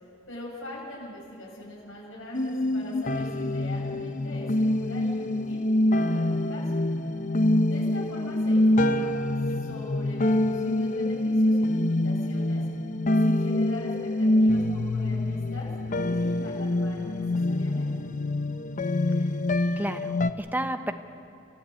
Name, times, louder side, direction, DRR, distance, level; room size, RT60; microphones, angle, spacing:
voice 1, 0.3-5.6 5.9-6.8 7.6-9.1 9.6-12.6 13.2-15.7 16.0-17.9, left 1 dB, 75° left, -5 dB, 7.9 m, -42 dB
sound 1, 2.3-20.3, left 1 dB, 40° left, 0.7 m, -25 dB
voice 2, 19.8-20.9, right 1 dB, 10° right, 7 dB, 1.0 m, -31 dB
28.0 x 14.5 x 8.5 m, 2.8 s
head